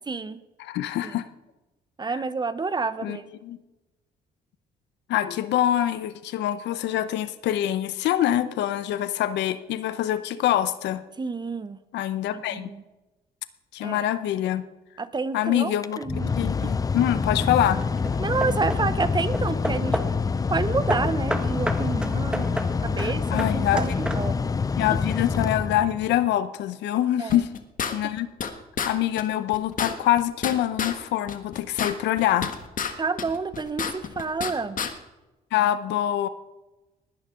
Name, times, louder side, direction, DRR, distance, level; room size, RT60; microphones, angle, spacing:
voice 1, 0.1-0.4 2.0-3.3 11.2-11.8 12.5-12.8 13.8-14.0 15.0-16.3 18.2-20.0 20.5-24.5 27.2-27.4 28.0-28.1 33.0-34.8, right 4 dB, 25° right, 14 dB, 0.9 m, -29 dB
voice 2, 0.6-1.3 2.1-2.2 3.0-3.6 5.1-11.0 11.9-12.7 13.7-14.6 15.3-16.0 16.4-17.8 23.0-24.0 24.8-27.5 27.9-28.3 28.9-32.5 35.5-36.3, left 12 dB, 85° left, 13 dB, 0.9 m, -25 dB
Mechanical fan, 15.7-26.3, left 5 dB, 20° left, 0.4 m, -26 dB
Hammer / Wood, 16.7-17.2 17.8-20.3 20.9-24.6, right 1 dB, 5° right, 1.5 m, -32 dB
sound 1, 27.3-28.5 28.8-28.9 29.2-29.3 29.5-31.0 31.3-32.9 33.2-34.5 34.8-34.9, left 7 dB, 50° left, 1.5 m, -29 dB
19.5 x 10.5 x 3.8 m, 1.1 s
cardioid pair, 90°, 18 cm